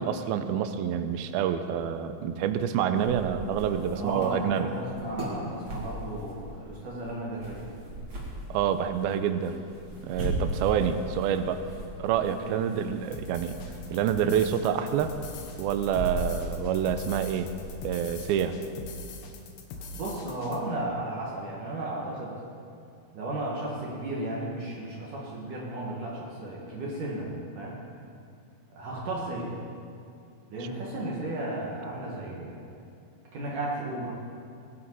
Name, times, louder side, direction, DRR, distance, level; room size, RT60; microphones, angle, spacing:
voice 1, 0.0-4.7 8.5-9.6 10.0-11.6 12.0-13.6 13.9-15.1 15.6-17.5 17.8-18.6, right 9 dB, 85° right, 9 dB, 2.5 m, -27 dB
sound 1, 3.0-18.2, right 1 dB, 35° right, 3.1 m, -39 dB
voice 2, 4.0-7.7 12.4-12.6 19.9-22.4 23.1-27.8 28.8-29.5 30.5-32.7 33.3-34.1, right 1 dB, 60° right, -4 dB, 3.2 m, -34 dB
sound 2, 13.1-20.6, left 2 dB, 80° left, 3.2 m, -42 dB
22.0 x 12.5 x 4.1 m, 2.4 s
omnidirectional pair, 4.4 m